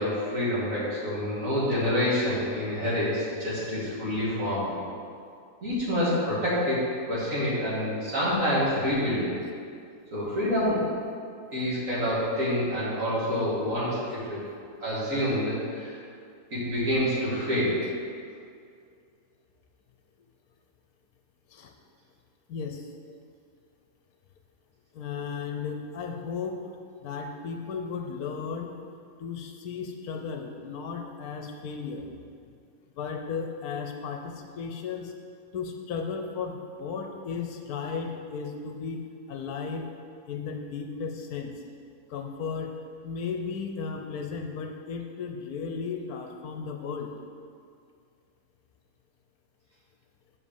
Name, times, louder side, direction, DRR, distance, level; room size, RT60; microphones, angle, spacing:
voice 1, 0.0-4.7 5.6-6.8 7.1-9.3 10.1-10.8 11.5-14.4 14.8-16.0 16.5-17.8, left 1 dB, 55° right, -9 dB, 2.9 m, -27 dB
voice 2, 22.5-22.9 24.9-26.6 27.0-28.7 29.2-32.1 33.0-35.1 35.5-39.0 39.3-39.9 40.3-41.5 42.1-42.7 43.0-47.1, left 5 dB, 70° left, 4 dB, 1.1 m, -35 dB
7.0 x 5.1 x 7.0 m, 2.3 s
omnidirectional pair, 1.7 m